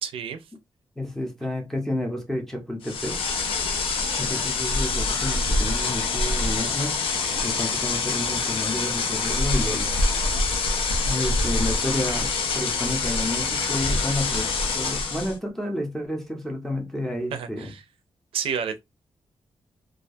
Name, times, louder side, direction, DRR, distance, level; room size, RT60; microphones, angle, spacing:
voice 1, 0.0-0.4 17.3-17.8 18.3-18.8, right 7 dB, 85° right, 0.4 m, -30 dB
voice 2, 1.0-3.2 4.2-7.0 7.4-9.9 11.0-17.7, left 1 dB, 5° left, 0.6 m, -30 dB
sound 1, 2.8-15.4, left 3 dB, 75° left, 0.5 m, -25 dB
2.3 x 2.2 x 2.5 m
wide cardioid pair, 140°, 9 cm